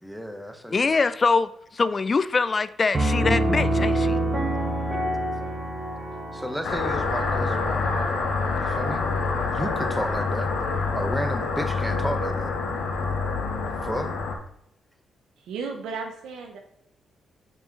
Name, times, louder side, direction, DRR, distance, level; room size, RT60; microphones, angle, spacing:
voice 1, 0.0-0.9 6.3-8.2 8.6-9.1 9.5-10.5 10.9-12.5 13.8-14.1, equal, ahead, 0.9 m, -32 dB
voice 2, 0.7-4.2, left 4 dB, 40° left, 0.4 m, -23 dB
Piano, 2.9-8.5, right 1 dB, 25° right, 1.8 m, -27 dB
sound 1, 6.6-14.4, left 4 dB, 75° left, 0.9 m, -26 dB
voice 3, 15.4-16.6, right 5 dB, 85° right, 0.9 m, -34 dB
5.6 x 4.7 x 4.0 m
cardioid pair, 65°, 0 cm